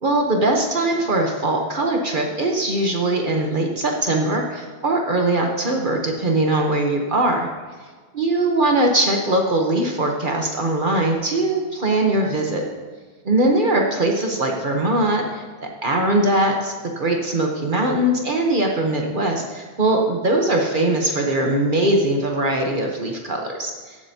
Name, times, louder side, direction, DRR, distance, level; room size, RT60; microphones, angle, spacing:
voice 1, 0.0-7.5 8.1-12.6 13.2-24.0, right 2 dB, 45° right, 1 dB, 1.1 m, -21 dB
15.0 x 7.7 x 2.8 m, 1.5 s
omnidirectional pair, 1.2 m